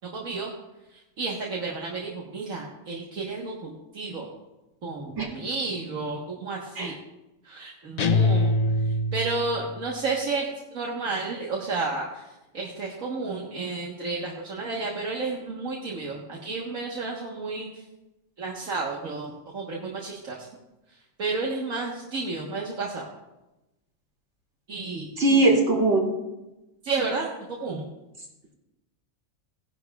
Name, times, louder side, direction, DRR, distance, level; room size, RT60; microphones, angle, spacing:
voice 1, 0.1-0.5 0.9-4.3 4.8-7.0 7.4-8.5 8.8-12.3 12.5-17.7 18.4-20.4 21.2-23.0 24.7-25.1 25.4-25.5 26.8-27.9, right 3 dB, 75° right, -3 dB, 1.8 m, -31 dB
sound 1, 8.0-9.7, left 2 dB, 65° left, 0.4 m, -23 dB
voice 2, 25.2-26.1, right 2 dB, 55° right, -1 dB, 3.0 m, -20 dB
17.5 x 11.0 x 2.4 m, 0.99 s
omnidirectional pair, 1.4 m